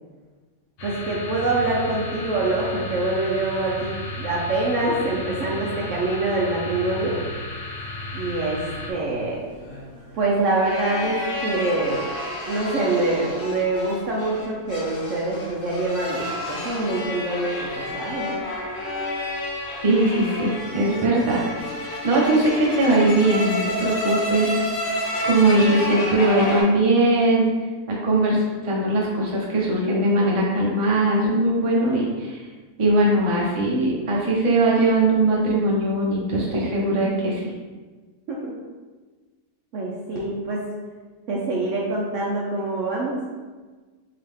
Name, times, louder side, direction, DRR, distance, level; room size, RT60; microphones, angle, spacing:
sound 1, 0.8-8.9, left 1 dB, 75° left, 1.3 m, -34 dB
voice 1, 0.8-7.2 8.1-9.4 10.1-12.0 12.5-18.3 38.3-38.5 39.7-40.7 41.3-43.2, right 2 dB, 65° right, -3 dB, 0.8 m, -25 dB
sound 2, 8.9-26.6, left 1 dB, 45° left, 0.8 m, -30 dB
voice 2, 19.8-21.4 22.0-27.5 27.9-32.4 32.8-37.4, right 2 dB, 35° right, -4 dB, 0.5 m, -20 dB
3.8 x 2.8 x 3.5 m, 1.4 s
omnidirectional pair, 1.7 m